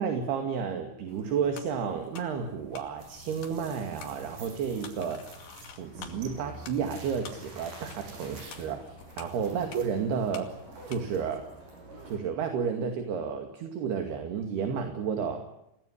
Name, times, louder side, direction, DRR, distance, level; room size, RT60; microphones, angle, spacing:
voice 1, 0.0-5.3 5.8-10.5 10.9-11.5 12.1-15.5, right 6 dB, 65° right, 5 dB, 4.2 m, -31 dB
sound 1, 1.1-11.5, left 6 dB, 70° left, 4.4 m, -50 dB
sound 2, 3.0-12.2, right 2 dB, 50° right, 7.6 m, -47 dB
29.5 x 18.0 x 10.0 m, 0.81 s
omnidirectional pair, 5.1 m